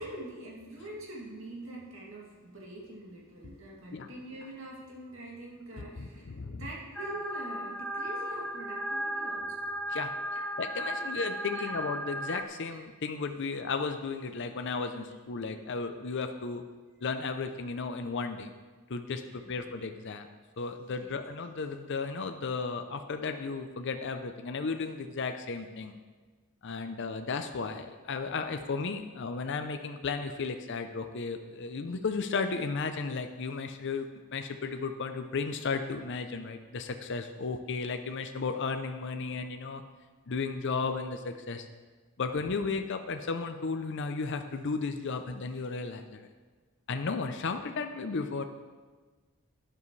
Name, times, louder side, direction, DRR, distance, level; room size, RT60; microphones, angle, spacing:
voice 1, 0.0-9.7 10.3-10.5 11.5-11.7 19.2-19.7 20.9-21.1, right 2 dB, 60° right, -3 dB, 2.5 m, -44 dB
voice 2, 5.8-6.6 9.9-10.1 10.6-16.6 17.0-18.5 18.9-20.3 20.6-26.0 26.6-39.8 40.3-41.7 42.2-46.3 46.9-48.4, left 4 dB, 55° left, 7 dB, 0.5 m, -34 dB
sound 1, 6.9-12.4, right 1 dB, 5° left, 0.3 m, -35 dB
12.0 x 9.8 x 3.2 m, 1.4 s
head